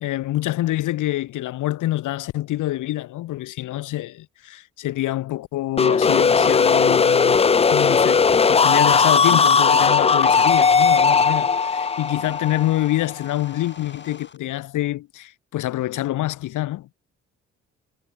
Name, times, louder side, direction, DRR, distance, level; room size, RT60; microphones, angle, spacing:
voice 1, 0.0-7.4 7.7-16.9, left 15 dB, 85° left, 1.7 m, -26 dB
sound 1, 5.8-13.5, left 5 dB, 20° left, 0.5 m, -17 dB
sound 2, 8.0-14.4, left 5 dB, 35° left, 5.5 m, -44 dB
cardioid pair, 90°, 30 cm